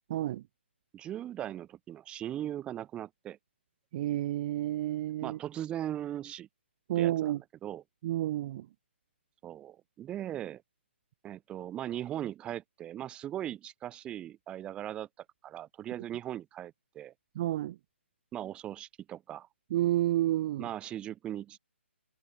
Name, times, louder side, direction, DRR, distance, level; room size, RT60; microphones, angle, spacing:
voice 1, 0.1-0.4 3.9-5.4 6.9-7.4 8.0-8.7 17.4-17.8 19.7-20.7, right 13 dB, 35° right, 3.8 m, -30 dB
voice 2, 0.9-3.4 5.2-6.5 7.0-7.8 9.4-10.6 11.2-15.1 15.4-17.1 18.3-19.5 20.6-21.6, right 11 dB, 15° right, 7.3 m, -39 dB
figure-of-eight pair, 135°, 7 cm